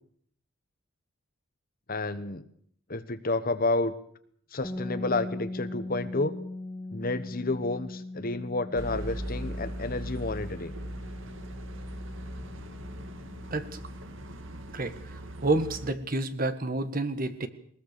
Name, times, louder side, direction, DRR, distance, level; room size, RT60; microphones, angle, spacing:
voice 1, 1.9-2.4 2.9-3.9 4.5-6.4 6.9-10.7, left 2 dB, 45° left, 12 dB, 1.2 m, -30 dB
sound 1, 4.6-14.4, left 2 dB, 15° left, 2.1 m, -41 dB
sound 2, 8.7-15.9, right 1 dB, 65° right, 2.0 m, -39 dB
voice 2, 14.7-17.5, right 2 dB, 45° right, 10 dB, 1.7 m, -29 dB
21.5 x 20.0 x 6.8 m, 0.64 s
head